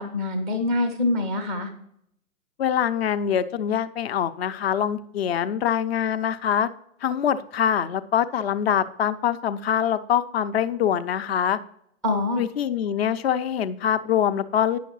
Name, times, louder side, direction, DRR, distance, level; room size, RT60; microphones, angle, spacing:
voice 1, 0.0-1.7 12.0-12.4, left 2 dB, ahead, 7 dB, 0.3 m, -25 dB
voice 2, 2.6-6.7 7.0-11.6 12.4-14.8, left 9 dB, 50° left, 13 dB, 0.6 m, -24 dB
9.3 x 6.3 x 3.1 m, 0.73 s
figure-of-eight pair, 120°, 41 cm